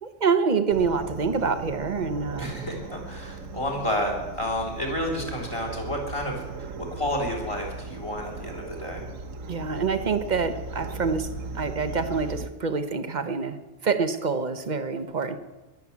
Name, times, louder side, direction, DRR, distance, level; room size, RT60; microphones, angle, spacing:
voice 1, 0.0-2.5 9.5-11.3 11.5-13.6 13.8-15.4, right 5 dB, 35° right, 10 dB, 1.0 m, -26 dB
sound 1, 0.7-12.5, right 3 dB, 75° right, 1.4 m, -38 dB
voice 2, 2.4-9.0, left 1 dB, 25° left, 1 dB, 3.6 m, -30 dB
21.5 x 8.3 x 7.2 m, 1.1 s
omnidirectional pair, 1.3 m